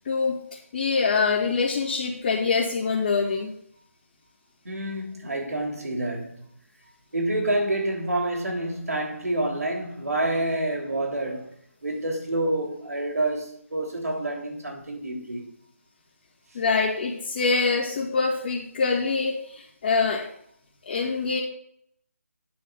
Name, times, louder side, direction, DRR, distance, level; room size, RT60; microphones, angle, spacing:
voice 1, 0.7-3.5 16.5-20.2 20.9-21.4, left 4 dB, 30° left, 1.9 m, -24 dB
voice 2, 4.6-6.5 7.1-11.5 11.8-15.5, right 1 dB, 90° right, 3.5 m, -28 dB
9.2 x 4.7 x 6.3 m
figure-of-eight pair, 170°, 8 cm